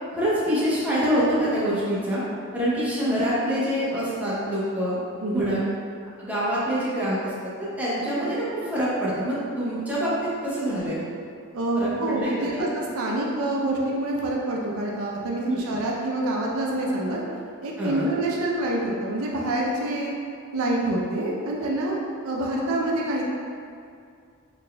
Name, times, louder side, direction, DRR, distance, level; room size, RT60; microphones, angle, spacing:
voice 1, 0.1-2.2 2.5-5.0 5.3-5.6 6.2-7.3 7.8-11.0 11.7-12.7 15.5-15.7 17.8-18.1, equal, 5° right, -10 dB, 0.8 m, -25 dB
voice 2, 5.2-5.6 11.5-12.7 13.0-17.2 17.6-20.1 20.5-22.0 22.2-23.3, right 1 dB, 80° right, -2 dB, 0.5 m, -26 dB
4.1 x 3.3 x 2.2 m, 2.3 s
head